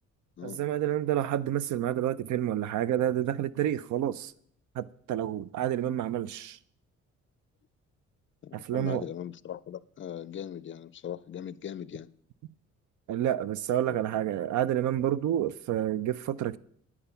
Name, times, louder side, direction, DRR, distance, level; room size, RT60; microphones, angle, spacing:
voice 1, 0.4-4.3 4.8-6.6 8.5-9.0 13.1-16.6, right 11 dB, 75° right, 0.5 m, -29 dB
voice 2, 8.4-12.1 13.9-14.4, left 9 dB, 40° left, 0.4 m, -40 dB
9.8 x 8.7 x 5.6 m
cardioid pair, 90°, 30 cm